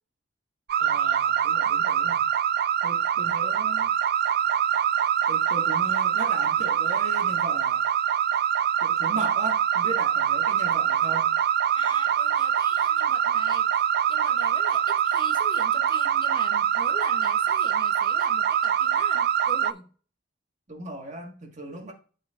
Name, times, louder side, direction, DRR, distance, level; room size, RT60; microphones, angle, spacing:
sound 1, 0.7-19.7, right 9 dB, 55° right, 0.3 m, -24 dB
voice 1, 0.8-2.3 2.8-3.9 5.3-7.9 8.8-11.4 20.7-21.9, right 2 dB, 40° right, 1.6 m, -37 dB
voice 2, 11.7-19.9, left 2 dB, 25° left, 0.8 m, -42 dB
12.5 x 4.4 x 2.5 m
head